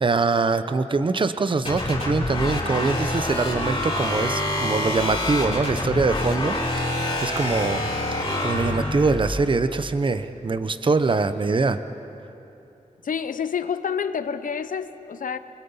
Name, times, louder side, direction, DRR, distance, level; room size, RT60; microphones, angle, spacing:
voice 1, 0.0-7.9 8.4-11.8, right 4 dB, 40° right, 11 dB, 0.8 m, -23 dB
sound 1, 1.6-9.2, left 1 dB, 45° left, 6.3 m, -26 dB
voice 2, 13.0-15.4, left 7 dB, 90° left, 12 dB, 0.8 m, -28 dB
28.0 x 23.0 x 5.6 m, 2.9 s
wide cardioid pair, 120°, 13 cm